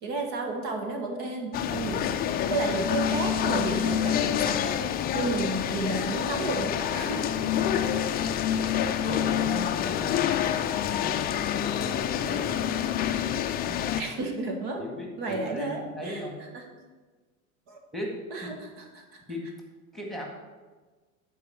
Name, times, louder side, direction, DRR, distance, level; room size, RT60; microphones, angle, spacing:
voice 1, 0.0-2.2 2.5-4.8 5.1-7.2 10.2-10.3 14.0-14.9 15.2-16.6 17.7-17.8 18.3-19.2, right 3 dB, 60° right, 2 dB, 1.8 m, -32 dB
sound 1, 1.5-14.0, left 10 dB, 25° left, 0.4 m, -27 dB
voice 2, 9.0-10.3 10.9-12.5 13.0-14.1 14.8-16.3 17.9-18.5 19.3-19.4 19.9-20.3, equal, ahead, -1 dB, 1.7 m, -38 dB
10.5 x 4.8 x 5.7 m, 1.3 s
hypercardioid pair, 105°, 42 cm